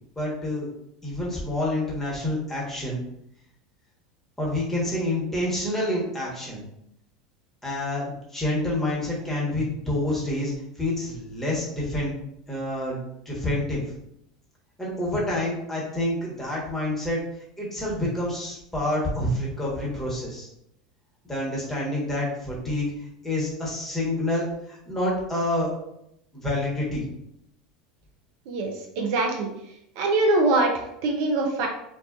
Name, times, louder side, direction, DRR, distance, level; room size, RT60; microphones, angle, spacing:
voice 1, 0.1-0.7 1.0-3.0 4.4-6.6 7.6-10.5 10.8-12.1 12.5-13.8 14.8-17.2 17.6-20.5 21.2-22.9 23.2-25.7 26.3-27.0, left 1 dB, 10° left, -5 dB, 1.1 m, -28 dB
voice 2, 28.5-29.5 30.0-31.7, right 2 dB, 60° right, 2 dB, 0.4 m, -23 dB
2.4 x 2.3 x 2.4 m, 0.78 s
hypercardioid pair, 85°, 3 cm